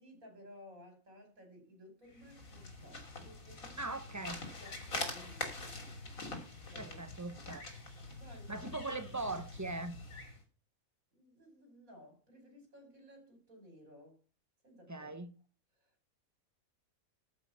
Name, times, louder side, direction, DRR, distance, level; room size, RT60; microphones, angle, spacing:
voice 1, 0.0-4.0 4.6-6.2 6.7-7.0 7.3-7.4 8.2-8.9 11.1-14.2 14.6-15.1 15.8-16.1, equal, 80° right, 5.6 m, -57 dB
sound 1, 2.1-10.4, left 2 dB, 75° left, 3.3 m, -44 dB
voice 2, 3.8-4.4 6.8-7.6 8.5-9.9 14.9-15.3, right 2 dB, 15° right, 1.1 m, -40 dB
14.0 x 6.0 x 5.7 m
omnidirectional pair, 1.4 m